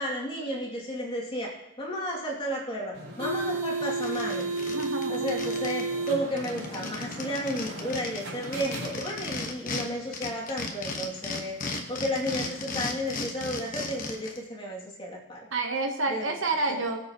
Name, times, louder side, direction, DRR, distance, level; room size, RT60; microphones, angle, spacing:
voice 1, 0.0-4.5 5.1-15.5 16.1-16.4 16.7-16.8, equal, 25° left, -3 dB, 2.5 m, -33 dB
sound 1, 2.9-9.4, right 3 dB, 80° right, 4.0 m, -33 dB
sound 2, 3.5-3.6 3.9-5.8 6.1-6.2 6.4-9.8 10.1-14.4, left 3 dB, 40° left, 1.3 m, -35 dB
voice 2, 4.7-5.3 15.5-17.0, right 3 dB, 65° right, 4 dB, 1.2 m, -29 dB
21.5 x 7.8 x 3.0 m, 0.89 s
head